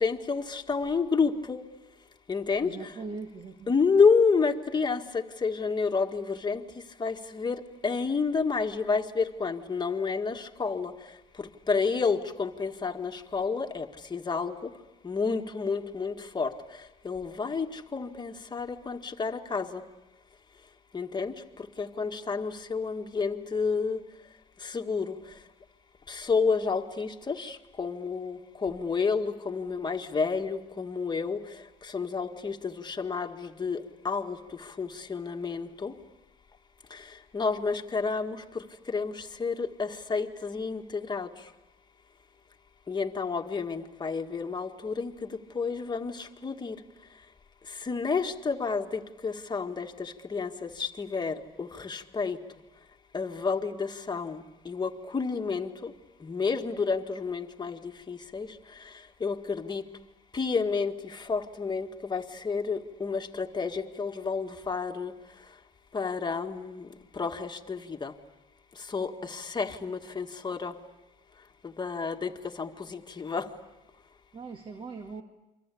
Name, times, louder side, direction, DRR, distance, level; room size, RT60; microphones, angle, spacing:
voice 1, 0.0-1.6 2.3-2.9 3.7-6.6 7.0-10.9 11.7-14.6 15.0-16.5 17.0-19.8 20.9-21.3 21.8-24.0 24.6-25.1 26.1-31.4 31.9-35.9 36.9-37.0 37.3-38.4 38.9-41.3 42.9-45.1 45.5-46.8 47.8-52.4 53.1-55.9 56.2-58.5 59.2-59.8 60.3-65.1 65.9-66.9 67.2-68.1 68.9-70.7 71.8-72.3 72.6-73.5, left 5 dB, 25° left, 4 dB, 1.8 m, -30 dB
voice 2, 2.6-3.7 74.3-75.2, right 4 dB, 30° right, 5 dB, 1.9 m, -40 dB
29.5 x 24.0 x 8.5 m, 1.0 s
cardioid pair, 110°, 17 cm